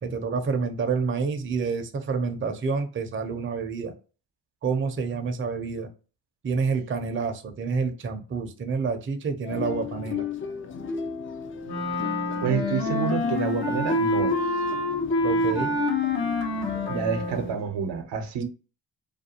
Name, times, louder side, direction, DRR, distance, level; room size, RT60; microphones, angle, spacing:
voice 1, 0.0-3.9 4.6-5.9 6.4-10.3 15.2-15.8, right 5 dB, 30° right, 0.5 m, -28 dB
sound 1, 9.4-17.5, left 6 dB, 30° left, 0.4 m, -35 dB
Wind instrument woodwind instrument, 11.6-17.5, left 2 dB, 65° left, 0.9 m, -26 dB
voice 2, 12.4-14.4 16.9-18.4, right 7 dB, 75° right, 0.7 m, -28 dB
2.5 x 2.3 x 2.7 m
supercardioid pair, 60°, 43 cm